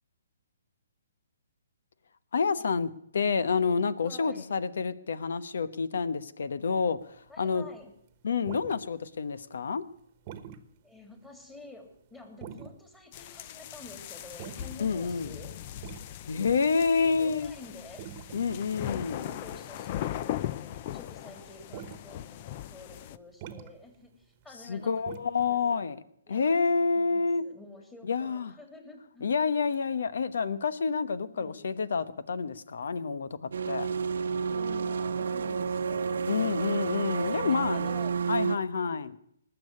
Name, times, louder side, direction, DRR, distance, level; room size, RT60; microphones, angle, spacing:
voice 1, 2.3-7.7 8.2-9.8 14.8-15.3 16.3-17.5 18.3-19.3 24.7-26.0 26.3-27.4 28.1-28.5 29.2-33.9 36.3-37.9 38.3-39.2, left 5 dB, 70° left, 15 dB, 1.0 m, -28 dB
voice 2, 4.0-4.6 7.3-7.9 10.8-15.5 16.5-16.6 17.0-18.0 19.1-25.0 25.4-25.8 26.3-29.3 31.3-31.6 34.5-37.0 37.2-38.2, left 2 dB, 10° left, 3 dB, 3.0 m, -49 dB
sound 1, 7.0-9.5 9.8-10.6 11.0-11.1 11.3-11.6 12.2-12.9 13.2-20.2 20.4-21.1 21.4-22.1 22.4-22.5 22.7-22.8 23.1-25.7, right 9 dB, 35° right, 1.3 m, -46 dB
sound 2, 13.1-23.2, left 12 dB, 35° left, 0.5 m, -39 dB
sound 3, 33.5-38.6, right 6 dB, 75° right, 0.9 m, -30 dB
19.5 x 7.1 x 9.7 m, 0.71 s
hypercardioid pair, 150°, 0 cm